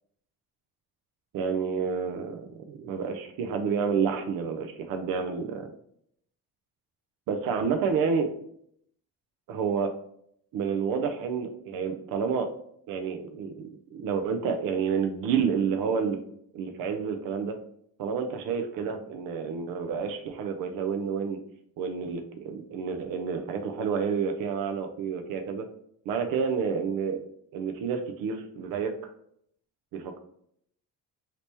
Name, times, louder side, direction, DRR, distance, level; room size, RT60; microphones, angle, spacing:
voice 1, 1.3-5.7 7.3-8.3 9.5-9.9 10.5-12.5 12.9-16.2 16.5-17.6 18.0-21.4 21.8-25.7 26.1-27.2 27.5-29.1 29.9-30.2, right 6 dB, 60° right, 7 dB, 0.5 m, -29 dB
3.2 x 2.9 x 2.9 m, 0.69 s
cardioid pair, 165°, 37 cm